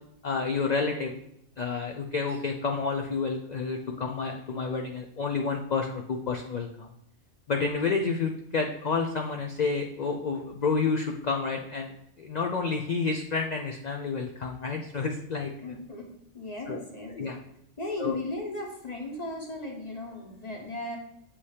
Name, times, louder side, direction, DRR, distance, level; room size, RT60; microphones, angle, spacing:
voice 1, 0.2-1.1 1.6-6.9 7.5-11.9 12.2-15.5 16.7-16.8 17.1-17.4 18.0-18.2, left 4 dB, 80° left, 3 dB, 0.3 m, -29 dB
voice 2, 15.6-17.1 17.8-21.0, left 2 dB, 35° left, 0 dB, 1.2 m, -36 dB
7.1 x 2.8 x 4.8 m, 0.76 s
omnidirectional pair, 1.3 m